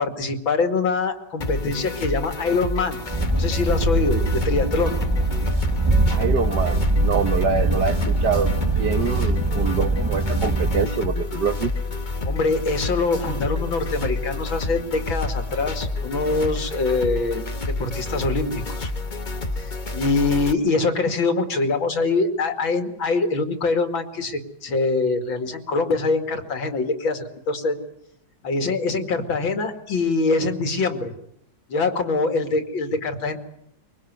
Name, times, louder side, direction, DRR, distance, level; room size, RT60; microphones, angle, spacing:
voice 1, 0.0-3.0 3.3-5.0 9.2-9.3 12.2-18.9 19.6-27.8 28.4-31.1 31.7-33.4, left 3 dB, 80° left, 7 dB, 3.2 m, -24 dB
sound 1, 1.4-20.5, left 2 dB, 25° left, 1.4 m, -29 dB
sound 2, 3.1-10.9, right 2 dB, 20° right, 0.8 m, -22 dB
voice 2, 6.1-8.5 8.8-11.7, right 5 dB, 60° right, 9 dB, 2.0 m, -25 dB
24.0 x 23.0 x 9.5 m, 0.72 s
omnidirectional pair, 2.1 m